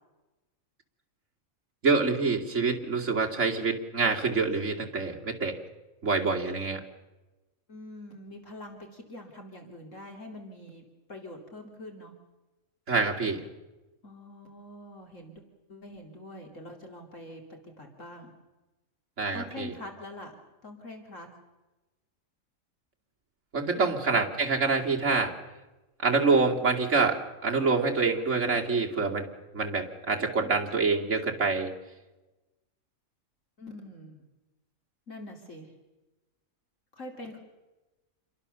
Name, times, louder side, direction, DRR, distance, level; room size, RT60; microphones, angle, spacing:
voice 1, 1.8-5.6 6.0-6.8 12.9-13.4 19.2-19.7 23.5-25.3 26.0-29.3 29.5-31.7, right 4 dB, 60° right, 0 dB, 3.0 m, -26 dB
voice 2, 7.7-12.1 14.0-15.4 15.7-18.3 19.3-20.4 20.6-21.3 23.8-23.9 33.6-34.2 35.1-35.7 36.9-37.4, left 1 dB, 65° left, 2 dB, 3.3 m, -44 dB
28.5 x 22.5 x 6.9 m, 1.1 s
omnidirectional pair, 1.4 m